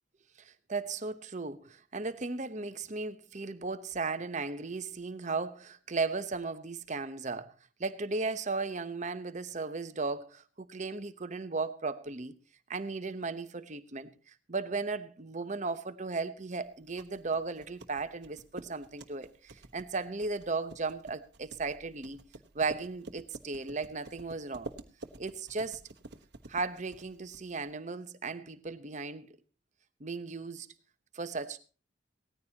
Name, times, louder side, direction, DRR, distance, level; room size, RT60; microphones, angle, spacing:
voice 1, 0.4-7.5 7.8-12.3 12.7-22.2 22.5-24.7 25.2-25.8 26.5-29.4 30.0-30.7 31.1-31.6, right 3 dB, 40° right, 0.9 m, -36 dB
sound 1, 16.7-27.7, right 2 dB, 55° right, 1.2 m, -50 dB
18.0 x 14.0 x 2.9 m
head